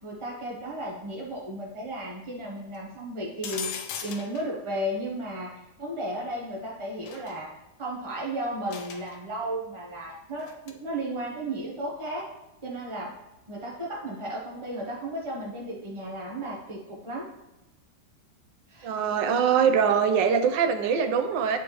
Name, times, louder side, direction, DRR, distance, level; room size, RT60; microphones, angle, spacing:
voice 1, 0.0-7.5 7.8-12.3 12.6-13.2 13.5-17.3 18.7-19.0, right 1 dB, 30° right, -3 dB, 0.5 m, -34 dB
sound 1, 3.4-4.5 7.1-7.3 8.7-9.2 10.4-10.7, left 7 dB, 85° left, 1.4 m, -37 dB
voice 2, 18.8-21.6, right 7 dB, 85° right, 7 dB, 1.3 m, -23 dB
9.5 x 4.1 x 3.0 m, 0.96 s
omnidirectional pair, 1.9 m